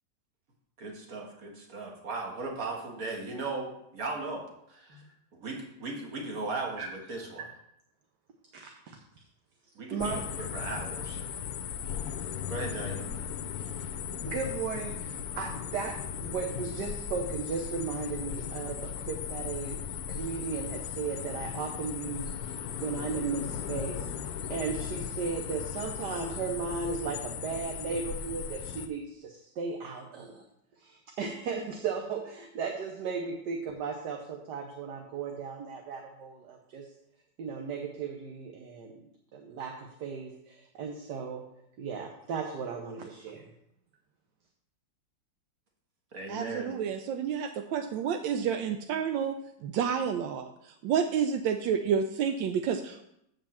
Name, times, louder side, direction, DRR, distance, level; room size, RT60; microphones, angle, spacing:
voice 1, 0.8-5.0 5.4-7.5 9.8-11.2 12.5-13.1 46.1-46.8, right 3 dB, 50° right, 1 dB, 2.0 m, -37 dB
voice 2, 9.9-10.2 14.2-19.8 20.1-24.1 24.5-30.4 30.8-36.9 37.4-39.0 39.3-41.5 41.8-43.5, right 5 dB, 65° right, 2 dB, 1.5 m, -36 dB
sound 1, 10.0-28.9, left 8 dB, 65° left, 1.0 m, -37 dB
voice 3, 46.3-53.0, right 7 dB, 85° right, 7 dB, 1.3 m, -30 dB
7.1 x 5.4 x 7.2 m, 0.77 s
omnidirectional pair, 2.0 m